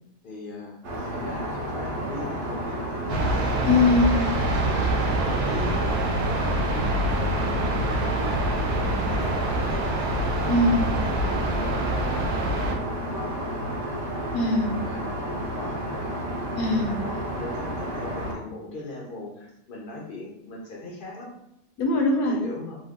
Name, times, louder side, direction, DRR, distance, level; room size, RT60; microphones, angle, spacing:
voice 1, 0.2-0.8 1.1-4.2 4.6-8.0 8.5-10.6 11.0-13.8 14.9-16.2 16.8-21.3 22.3-22.8, left 2 dB, 60° left, -3 dB, 0.5 m, -39 dB
Aircraft, 0.8-18.3, right 1 dB, 60° right, 0.9 m, -31 dB
sound 1, 3.1-12.8, right 1 dB, 85° right, 1.1 m, -26 dB
voice 2, 3.6-4.3 10.5-10.9 14.3-14.8 16.5-17.0 21.8-22.5, left 2 dB, 80° left, 2 dB, 1.1 m, -22 dB
3.0 x 2.0 x 3.5 m, 0.81 s
omnidirectional pair, 1.6 m